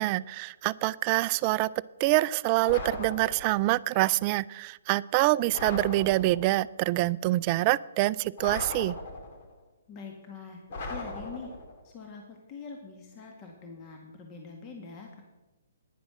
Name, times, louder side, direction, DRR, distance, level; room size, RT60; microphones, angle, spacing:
voice 1, 0.0-1.7 2.0-9.0, right 18 dB, 35° right, 19 dB, 0.3 m, -26 dB
sound 1, 2.6-3.7 5.5-6.6 8.4-9.5 10.7-11.8, left 2 dB, 45° left, 2.2 m, -38 dB
voice 2, 9.9-10.6 10.9-11.5 11.8-15.2, left 5 dB, 30° left, 1 dB, 1.8 m, -44 dB
10.0 x 10.0 x 6.2 m, 1.1 s
hypercardioid pair, 135°, 0 cm